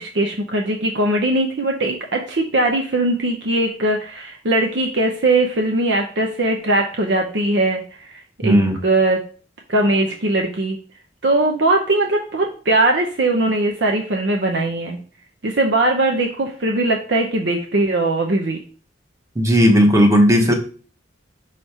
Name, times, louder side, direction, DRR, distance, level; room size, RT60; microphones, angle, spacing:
voice 1, 0.0-7.8 8.1-8.6 8.8-9.2 9.7-10.8 11.2-15.0 15.4-18.6, right 2 dB, 65° right, 2 dB, 0.7 m, -20 dB
voice 2, 8.4-8.8 19.3-20.5, equal, 15° right, 3 dB, 1.0 m, -14 dB
5.7 x 3.2 x 5.5 m, 0.41 s
head